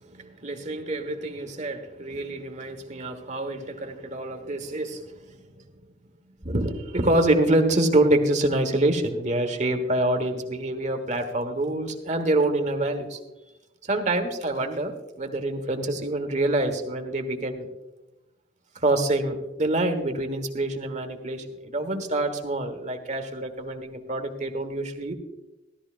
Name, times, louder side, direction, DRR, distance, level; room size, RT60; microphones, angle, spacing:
voice 1, 0.1-5.4 6.4-13.2 13.9-17.7 18.8-25.1, right 1 dB, 40° right, 6 dB, 1.4 m, -26 dB
16.5 x 12.5 x 2.5 m, 1.0 s
head